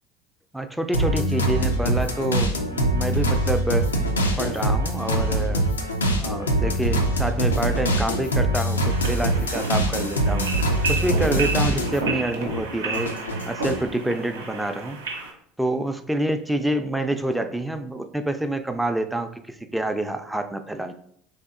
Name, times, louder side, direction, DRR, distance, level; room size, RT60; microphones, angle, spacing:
voice 1, 0.5-3.9 4.4-5.6 6.1-10.5 10.9-13.1 13.5-20.9, right 1 dB, 5° right, 7 dB, 0.3 m, -27 dB
sound 1, 0.9-12.1 12.5-13.9, right 1 dB, 85° left, 0.3 m, -23 dB
sound 2, 8.9-15.3, right 4 dB, 80° right, 0.5 m, -32 dB
3.3 x 2.7 x 2.4 m, 0.67 s
hypercardioid pair, 70°, 0 cm